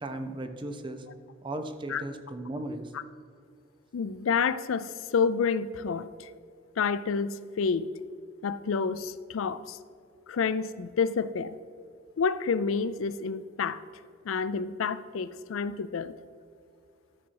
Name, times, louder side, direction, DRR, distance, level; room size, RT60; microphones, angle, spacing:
voice 1, 0.0-1.0 1.4-2.9, right 1 dB, 25° right, 7 dB, 0.7 m, -36 dB
voice 2, 3.9-6.3 6.8-7.9 8.4-9.8 10.3-11.6 12.2-13.8 14.2-16.1, left 5 dB, 75° left, 15 dB, 0.4 m, -29 dB
13.5 x 6.1 x 4.6 m, 2.4 s
head